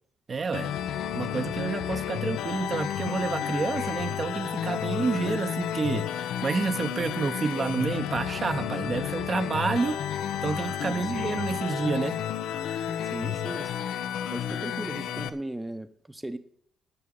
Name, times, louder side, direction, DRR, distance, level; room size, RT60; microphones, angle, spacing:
voice 1, 0.3-0.7 1.1-6.1 6.4-10.0 10.4-12.2, right 4 dB, 40° right, 8 dB, 0.8 m, -29 dB
sound 1, 0.5-15.3, left 9 dB, 80° left, 0.8 m, -31 dB
voice 2, 13.1-13.8 14.3-16.4, right 1 dB, 10° right, 10 dB, 0.8 m, -37 dB
10.5 x 6.4 x 8.8 m, 0.64 s
cardioid pair, 90°, 0 cm